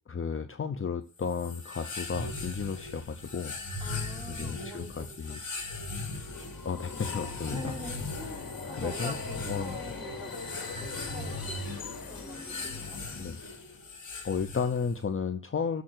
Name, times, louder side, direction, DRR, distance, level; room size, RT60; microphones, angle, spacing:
voice 1, 0.1-3.6 4.3-5.4 6.6-7.7 8.7-9.2 9.5-9.9 13.2-13.4 14.2-15.8, left 6 dB, 35° left, 9 dB, 0.7 m, -33 dB
sound 1, 1.2-15.0, left 3 dB, 55° left, 3.2 m, -39 dB
voice 2, 3.8-5.5 5.8-6.0 7.5-13.0, right 2 dB, 15° right, 0 dB, 3.5 m, -45 dB
Subway metro underground, 6.0-13.8, left 4 dB, 75° left, 2.3 m, -42 dB
7.0 x 6.6 x 7.8 m, 0.38 s
wide cardioid pair, 110°, 36 cm